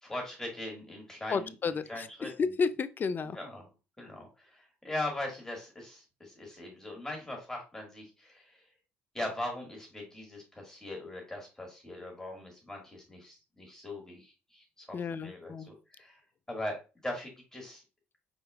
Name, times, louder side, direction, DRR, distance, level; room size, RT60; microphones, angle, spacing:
voice 1, 0.0-2.3 3.3-3.7 4.0-8.6 9.1-16.2 16.5-17.8, left 1 dB, 10° left, 2.0 m, -40 dB
voice 2, 1.3-3.4 14.9-15.7, left 5 dB, 40° left, 0.5 m, -32 dB
5.0 x 4.3 x 2.4 m
supercardioid pair, 75°, 5 cm